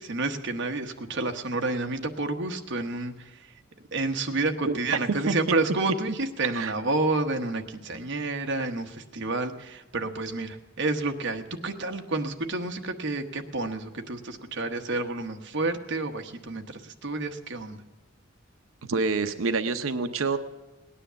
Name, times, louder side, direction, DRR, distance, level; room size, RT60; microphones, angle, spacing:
voice 1, 0.0-3.4 3.9-17.8, right 2 dB, 60° right, 5 dB, 1.2 m, -30 dB
voice 2, 18.9-20.4, right 4 dB, 85° right, 9 dB, 0.7 m, -27 dB
18.5 x 10.0 x 6.9 m, 1.1 s
head